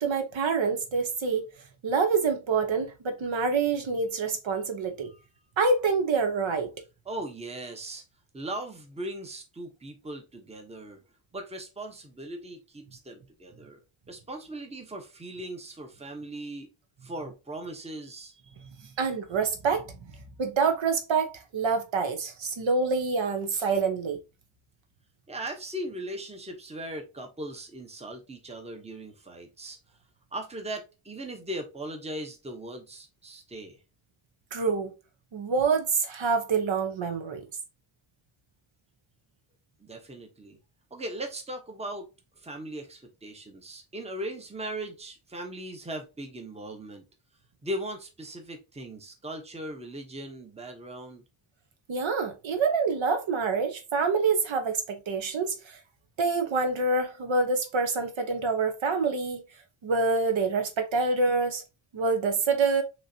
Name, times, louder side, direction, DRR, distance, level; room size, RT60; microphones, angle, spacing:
voice 1, 0.0-1.5 1.8-5.1 5.6-6.7 19.0-19.9 20.4-24.2 34.5-34.9 35.3-37.4 51.9-55.8 56.2-59.4 59.8-61.6 61.9-62.8, right 4 dB, 65° right, 1.0 m, -26 dB
voice 2, 7.1-8.0 8.3-11.0 11.3-13.8 14.1-16.7 17.0-18.9 25.3-29.8 30.3-33.8 39.8-40.6 40.9-42.1 42.4-47.0 47.6-51.2, right 1 dB, 15° right, 0.9 m, -39 dB
6.3 x 3.0 x 2.7 m
wide cardioid pair, 150°, 49 cm